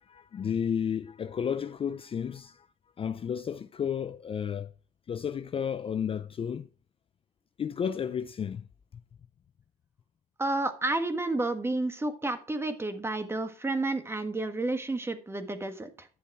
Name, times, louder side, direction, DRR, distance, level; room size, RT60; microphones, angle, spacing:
voice 1, 0.0-2.7 3.0-4.7 5.1-6.7 7.6-8.7, left 7 dB, 35° left, 0.5 m, -32 dB
voice 2, 10.4-16.1, right 2 dB, 15° right, 1.5 m, -31 dB
10.5 x 7.1 x 4.7 m
cardioid pair, 110°, 17 cm